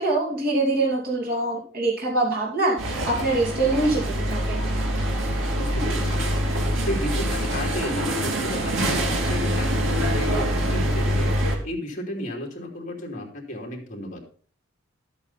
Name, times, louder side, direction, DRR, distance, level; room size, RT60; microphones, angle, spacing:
voice 1, 0.0-4.6, right 2 dB, 50° right, -3 dB, 2.7 m, -24 dB
sound 1, 2.8-11.6, equal, 80° right, 2.5 m, -25 dB
voice 2, 5.5-6.2 6.8-11.3 11.6-14.2, left 1 dB, 40° left, 0 dB, 3.0 m, -33 dB
12.0 x 8.5 x 4.1 m, 0.43 s
head